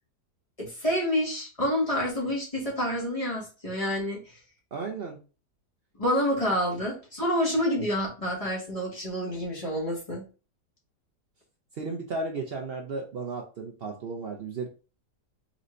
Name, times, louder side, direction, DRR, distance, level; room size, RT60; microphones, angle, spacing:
voice 1, 0.6-4.2 6.0-10.3, equal, 20° left, -4 dB, 1.6 m, -28 dB
voice 2, 4.7-5.2 11.7-14.7, right 3 dB, 80° right, 2 dB, 0.5 m, -34 dB
4.3 x 4.0 x 2.6 m, 0.34 s
omnidirectional pair, 1.9 m